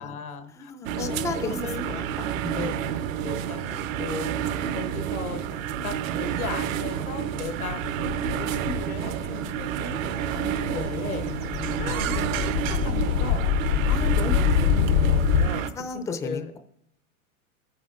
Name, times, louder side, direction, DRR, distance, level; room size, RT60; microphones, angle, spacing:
voice 1, 0.0-0.7 1.0-2.1 2.5-2.7 3.1-5.6 5.8-11.3 11.8-13.4 13.9-15.7 15.9-16.5, left 5 dB, 85° left, 8 dB, 1.3 m, -36 dB
voice 2, 0.6-1.6 1.9-2.9 11.5-12.0 13.7-13.9 15.8-16.6, left 3 dB, 5° left, 8 dB, 0.5 m, -35 dB
sound 1, 0.9-15.7, right 9 dB, 65° right, 1.0 m, -29 dB
sound 2, 7.6-8.8 9.5-9.6 9.9-15.5, left 8 dB, 60° left, 0.8 m, -25 dB
17.0 x 9.5 x 2.5 m, 0.76 s
hypercardioid pair, 110°, 43 cm